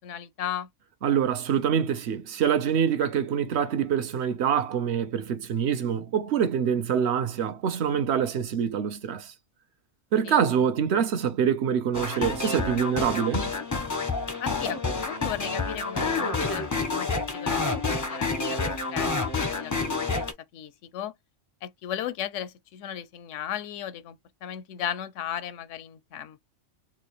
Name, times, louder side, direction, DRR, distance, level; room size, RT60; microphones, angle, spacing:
voice 1, 0.0-0.7 10.2-10.4 14.4-20.3 20.5-21.1 21.6-26.4, left 10 dB, 85° left, 0.9 m, -36 dB
voice 2, 1.0-9.3 10.1-13.5, right 8 dB, 65° right, 1.0 m, -25 dB
sound 1, 11.9-20.3, left 3 dB, 20° left, 0.5 m, -28 dB
4.1 x 2.4 x 3.0 m
omnidirectional pair, 1.2 m